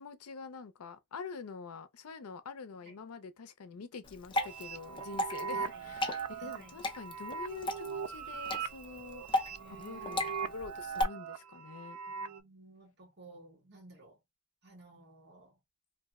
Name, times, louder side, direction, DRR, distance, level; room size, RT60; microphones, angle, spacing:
voice 1, 0.0-9.2 9.7-12.0, left 5 dB, 85° left, 0.5 m, -46 dB
Water / Drip, 4.0-11.0, left 1 dB, 20° left, 0.5 m, -36 dB
sound 1, 4.3-12.4, right 6 dB, 85° right, 0.4 m, -40 dB
voice 2, 5.5-5.9 6.4-6.8 9.5-10.3 12.1-14.2 14.6-15.6, right 2 dB, 50° right, 1.4 m, -55 dB
2.6 x 2.0 x 3.5 m
head